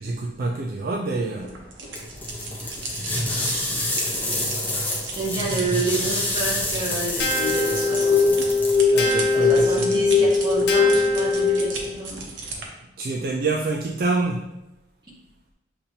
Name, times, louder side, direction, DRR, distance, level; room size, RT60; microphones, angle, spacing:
voice 1, 0.0-1.6 8.9-10.2 13.0-14.5, right 3 dB, 50° right, 0 dB, 0.3 m, -27 dB
sound 1, 1.4-12.7, right 3 dB, 90° right, 0.8 m, -36 dB
sound 2, 1.9-9.2, left 1 dB, 10° left, 0.6 m, -28 dB
voice 2, 3.2-8.4 9.3-12.2, right 3 dB, 25° right, -6 dB, 1.3 m, -30 dB
sound 3, 7.2-12.0, left 4 dB, 60° left, 0.7 m, -20 dB
6.7 x 2.8 x 2.7 m, 0.93 s
head